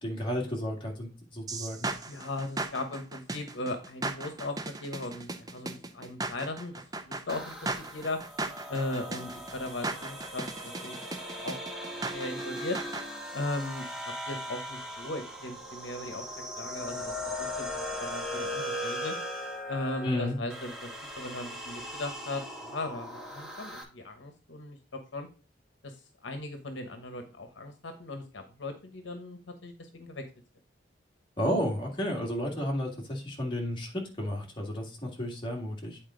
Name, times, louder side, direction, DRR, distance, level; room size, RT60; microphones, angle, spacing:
voice 1, 0.0-1.9 20.0-20.4 31.4-36.0, equal, 25° left, -2 dB, 1.9 m, -32 dB
sound 1, 1.5-13.1, right 2 dB, 20° right, 0.5 m, -37 dB
voice 2, 2.1-6.7 7.0-8.2 8.7-11.0 11.4-11.5 12.1-12.8 13.3-16.2 16.6-17.7 18.0-19.2 19.7-20.9 21.2-24.8 25.1-25.3 25.8-26.0 26.2-30.2, left 2 dB, 75° left, 6 dB, 1.0 m, -37 dB
sound 2, 7.3-23.8, equal, 5° right, 1.1 m, -39 dB
8.8 x 4.3 x 3.8 m, 0.34 s
head